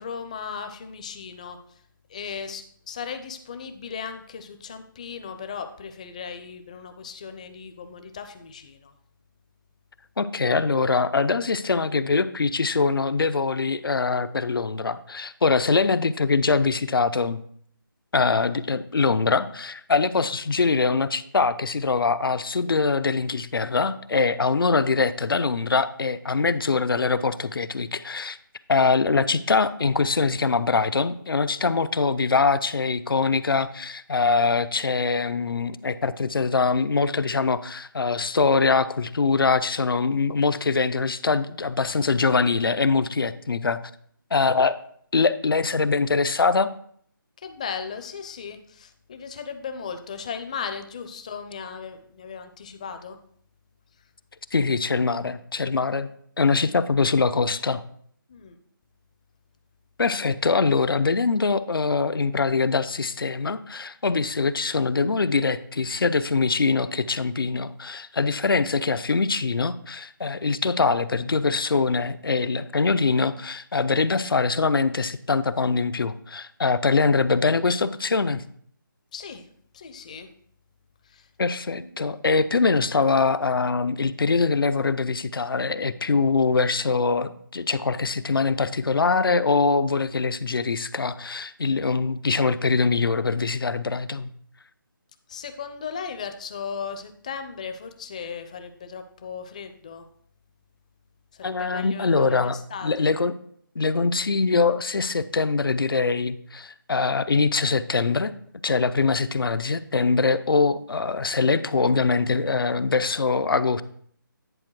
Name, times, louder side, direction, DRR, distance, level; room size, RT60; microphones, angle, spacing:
voice 1, 0.0-1.6 2.1-8.9 47.4-53.2 58.3-58.5 79.1-79.4 79.7-80.3 81.1-81.3 81.7-81.9 95.3-100.0 101.3-103.1, left 6 dB, 20° left, 8 dB, 0.5 m, -36 dB
voice 2, 10.2-17.4 18.1-28.4 28.7-43.8 44.3-44.8 45.1-46.7 54.5-56.1 56.4-57.8 60.0-78.4 81.4-94.3 101.4-103.3 103.8-108.3 108.6-113.8, left 4 dB, 85° left, 13 dB, 0.6 m, -23 dB
9.9 x 4.5 x 4.6 m, 0.63 s
figure-of-eight pair, 165°, 12 cm